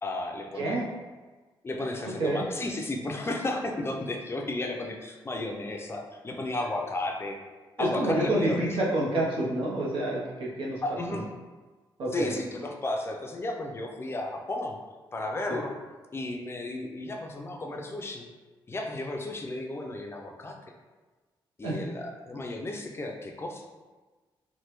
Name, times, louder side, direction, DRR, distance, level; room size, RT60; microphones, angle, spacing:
voice 1, 0.0-0.8 1.6-7.4 7.8-8.6 10.8-11.3 12.1-14.8 15.1-15.7 16.1-18.3 18.7-20.6 21.6-23.6, left 2 dB, 25° left, 2 dB, 0.4 m, -33 dB
voice 2, 7.8-10.8 11.1-11.2 12.0-12.3 15.5-15.6 21.6-21.8, right 1 dB, 75° right, -4 dB, 0.8 m, -28 dB
3.2 x 2.1 x 3.0 m, 1.3 s
cardioid pair, 90°, 9 cm